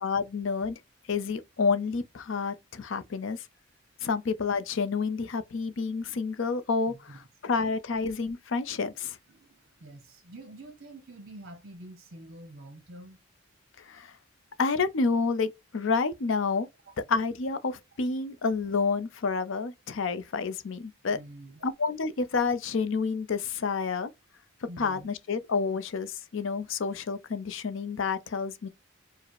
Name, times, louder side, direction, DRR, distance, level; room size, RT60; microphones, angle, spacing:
voice 1, 0.0-0.8 1.1-3.4 4.0-9.1 13.9-14.1 14.6-16.7 17.1-21.2 21.6-24.1 24.8-28.7, left 4 dB, 65° left, 0.5 m, -29 dB
voice 2, 6.9-7.2 8.8-13.2 21.1-21.6 24.7-25.1, right 1 dB, 50° right, 0.8 m, -47 dB
4.8 x 2.0 x 4.6 m
head